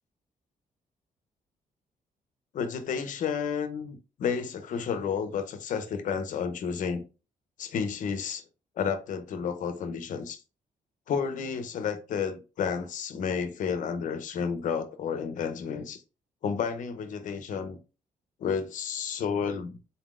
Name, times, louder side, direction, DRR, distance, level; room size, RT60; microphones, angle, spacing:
voice 1, 2.5-7.0 7.6-8.4 8.8-10.4 11.1-16.0 16.4-17.8 18.4-19.8, left 6 dB, 60° left, 0.7 m, -31 dB
4.0 x 3.8 x 2.4 m
cardioid pair, 155°, 15 cm